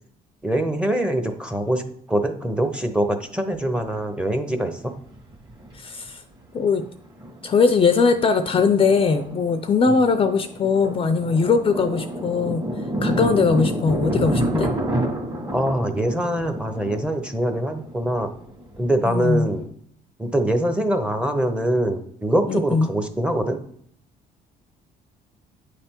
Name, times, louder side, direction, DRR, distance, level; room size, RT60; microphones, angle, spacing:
voice 1, 0.4-1.8 2.1-4.9 9.9-10.0 15.5-18.3 18.8-19.6 20.2-23.6, right 1 dB, 5° right, 6 dB, 0.7 m, -23 dB
Thunder, 3.5-3.6 5.0-5.8 6.0-6.1 6.5-6.8 7.2-19.6, right 1 dB, 25° right, 1.7 m, -29 dB
voice 2, 5.7-6.2 6.5-6.8 7.4-12.6 13.0-14.7 19.1-19.5 22.5-22.9, left 5 dB, 35° left, 9 dB, 0.5 m, -20 dB
9.1 x 3.3 x 4.4 m, 0.67 s
cardioid pair, 110°, 17 cm